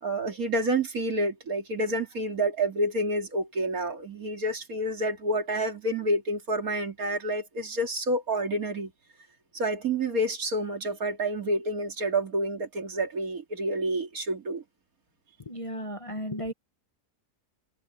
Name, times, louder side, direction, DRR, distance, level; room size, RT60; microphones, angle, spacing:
voice 1, 0.0-8.9 9.5-14.6, right 1 dB, 65° right, 2.9 m, -29 dB
voice 2, 15.5-16.5, equal, 25° left, 1.1 m, -34 dB
omnidirectional pair, 1.6 m